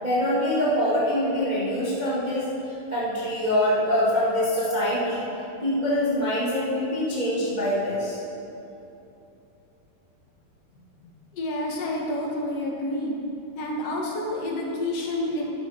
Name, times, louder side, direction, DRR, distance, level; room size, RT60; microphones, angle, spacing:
voice 1, 0.0-2.5 2.9-5.2 5.6-8.2, equal, 20° right, -8 dB, 1.3 m, -24 dB
voice 2, 11.3-13.1 13.6-15.4, left 1 dB, 55° left, -2 dB, 2.1 m, -29 dB
11.5 x 10.5 x 4.4 m, 2.8 s
omnidirectional pair, 4.0 m